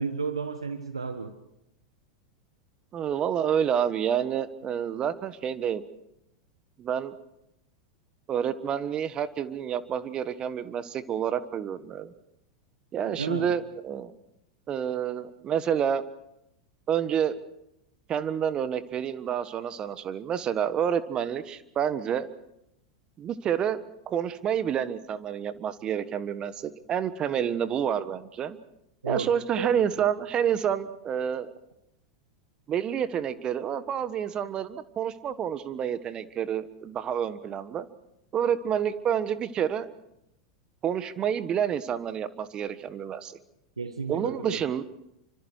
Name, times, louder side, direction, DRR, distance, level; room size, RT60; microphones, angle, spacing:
voice 1, 0.0-1.3 13.0-13.5 29.0-29.3 29.6-29.8 43.8-44.6, right 4 dB, 90° right, 9 dB, 1.4 m, -32 dB
voice 2, 2.9-5.8 6.8-7.1 8.3-12.1 12.9-14.1 14.7-16.0 16.9-17.3 18.1-22.3 23.2-23.8 24.1-28.6 29.0-31.5 32.7-37.9 38.3-39.9 40.8-43.3 44.1-44.8, right 8 dB, 35° right, 14 dB, 1.4 m, -28 dB
28.5 x 25.0 x 4.7 m, 0.83 s
hypercardioid pair, 90°, 3 cm